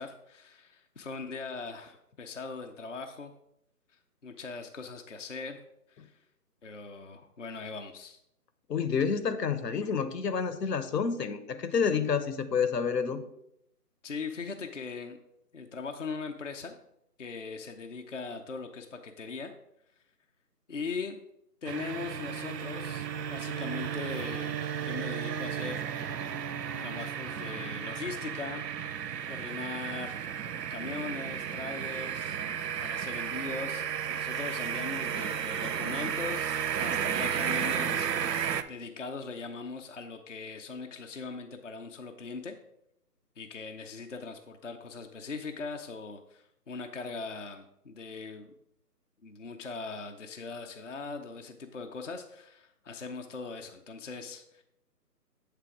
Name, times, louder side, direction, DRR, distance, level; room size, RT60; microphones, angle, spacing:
voice 1, 0.0-3.3 4.2-5.6 5.9-6.2 6.6-8.2 14.0-15.2 15.5-16.8 17.2-19.5 20.7-21.2 21.6-26.1 26.8-28.7 29.3-32.4 32.8-42.6 43.4-48.5 49.2-54.6, left 4 dB, 50° left, 4 dB, 0.5 m, -40 dB
voice 2, 8.7-13.2, left 6 dB, 80° left, 11 dB, 0.8 m, -29 dB
sound 1, 21.6-38.6, right 8 dB, 85° right, 0.6 m, -33 dB
7.7 x 3.3 x 4.7 m, 0.80 s
hypercardioid pair, 175°, 48 cm